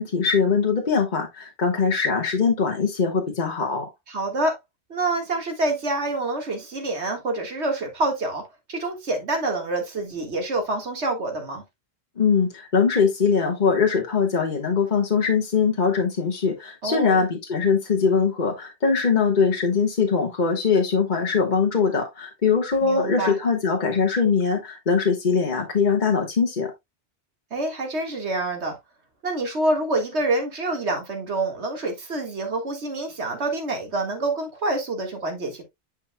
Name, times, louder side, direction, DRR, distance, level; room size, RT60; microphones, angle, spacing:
voice 1, 0.0-3.9 12.2-26.7, left 5 dB, 45° left, 1.4 m, -22 dB
voice 2, 4.1-4.6 4.9-8.4 8.7-11.6 16.8-17.2 22.8-23.4 27.5-28.7 29.2-35.6, right 2 dB, 75° right, 2.0 m, -27 dB
9.1 x 5.4 x 2.2 m
omnidirectional pair, 1.2 m